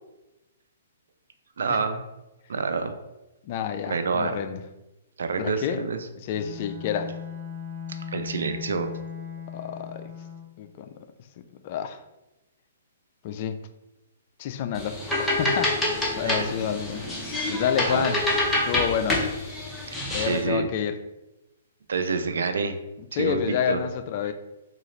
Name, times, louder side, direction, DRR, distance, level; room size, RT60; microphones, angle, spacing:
voice 1, 1.6-2.0 2.5-2.9 3.8-4.4 5.2-6.0 8.1-8.9 16.2-16.5 17.8-18.1 20.2-20.7 21.9-22.8 23.1-23.8 24.3-24.4, right 5 dB, 75° right, 8 dB, 0.4 m, -27 dB
voice 2, 3.4-4.6 5.4-5.9 6.2-7.1 9.5-10.1 10.6-10.9 11.6-12.0 13.2-13.6 14.4-17.1 17.5-18.2 18.6-19.3 20.1-21.0 23.1-24.3, left 8 dB, 40° left, 9 dB, 0.3 m, -29 dB
Bowed string instrument, 6.3-10.6, left 7 dB, 30° right, 1.4 m, -38 dB
sound 1, 14.8-20.4, left 1 dB, 5° left, 0.8 m, -27 dB
3.8 x 2.4 x 3.1 m, 0.99 s
hypercardioid pair, 145°, 0 cm